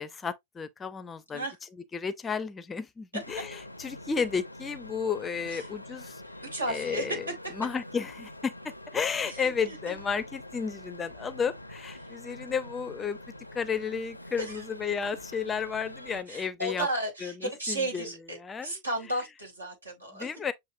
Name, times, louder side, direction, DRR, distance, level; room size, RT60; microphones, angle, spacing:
voice 1, 0.0-1.4 1.9-6.2 6.7-7.3 7.6-8.5 8.9-13.2 13.5-16.9 17.2-18.1 18.4-18.7 20.1-20.5, left 6 dB, 15° left, 0.4 m, -32 dB
sound 1, 3.2-16.2, left 1 dB, 85° left, 0.4 m, -45 dB
voice 2, 6.5-7.1 9.3-10.0 12.0-12.1 14.4-14.6 16.3-20.3, right 1 dB, 80° right, 2.0 m, -34 dB
7.3 x 2.5 x 2.7 m
figure-of-eight pair, 95°, 0 cm